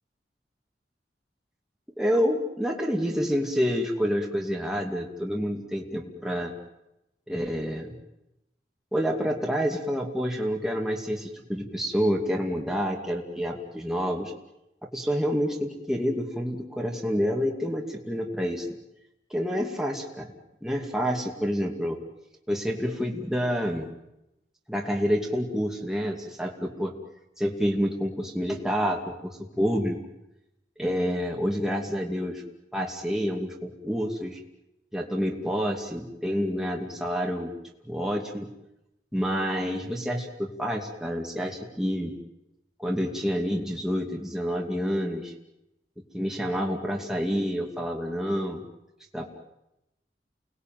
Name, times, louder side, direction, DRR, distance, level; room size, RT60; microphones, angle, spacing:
voice 1, 2.0-6.5 7.3-8.0 8.9-14.3 14.9-18.7 19.3-20.3 20.6-22.0 22.5-23.9 24.7-26.9 27.4-30.0 30.8-32.4 32.7-34.4 34.9-37.5 37.8-38.5 39.1-42.1 42.8-45.3 46.1-48.6 49.1-49.4, equal, 5° right, 0 dB, 2.6 m, -28 dB
29.5 x 20.0 x 9.4 m, 0.90 s
head